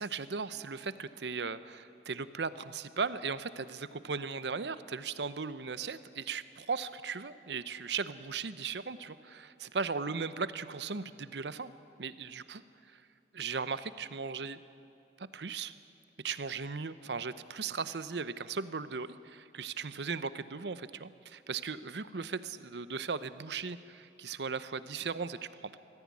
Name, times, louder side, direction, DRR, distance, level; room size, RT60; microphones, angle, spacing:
voice 1, 0.0-11.7 12.0-12.6 13.3-14.6 15.2-15.7 16.2-25.8, right 5 dB, 75° right, 14 dB, 0.8 m, -37 dB
21.0 x 14.5 x 9.6 m, 2.6 s
head